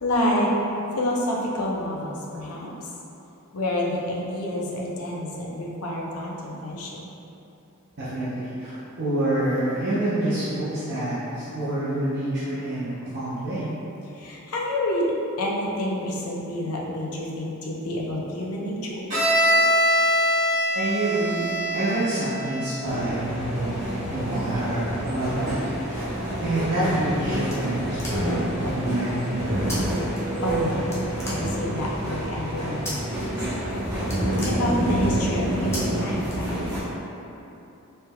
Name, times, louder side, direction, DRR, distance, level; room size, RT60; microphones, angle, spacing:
voice 1, 0.0-0.5 0.9-2.9 3.5-7.0 14.1-15.1 15.4-19.0 30.4-30.9 31.3-33.0 34.4-36.6, left 1 dB, 85° left, -3 dB, 0.6 m, -28 dB
voice 2, 8.0-13.7 20.7-25.6 25.8-26.0 26.4-29.4, right 1 dB, 50° right, -12 dB, 0.7 m, -27 dB
Bowed string instrument, 19.1-22.8, equal, 35° right, 1.2 m, -23 dB
sound 1, 22.8-36.8, right 1 dB, 15° right, 1.3 m, -28 dB
sound 2, 27.5-28.5 29.7-29.8 30.1-30.6 30.9-31.9 32.8-33.2 33.6-33.7 34.0-35.1 35.7-35.8 36.2-36.9, left 1 dB, 10° left, 0.7 m, -37 dB
4.5 x 3.3 x 2.3 m, 2.9 s
head